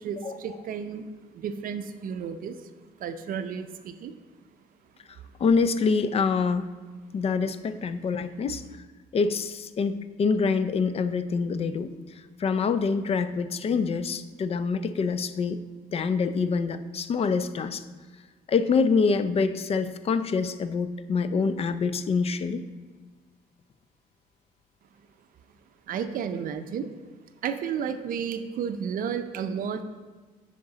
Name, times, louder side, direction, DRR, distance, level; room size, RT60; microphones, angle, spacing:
voice 1, 0.0-1.0 1.4-2.5 3.0-3.7 4.0-4.1 25.9-26.9 27.4-29.8, right 7 dB, 55° right, 9 dB, 0.5 m, -32 dB
voice 2, 5.4-6.6 7.1-8.6 9.1-11.9 12.4-15.6 15.9-17.8 18.5-22.6, left 5 dB, 35° left, 12 dB, 0.4 m, -25 dB
9.4 x 5.1 x 3.9 m, 1.4 s
cardioid pair, 110°, 17 cm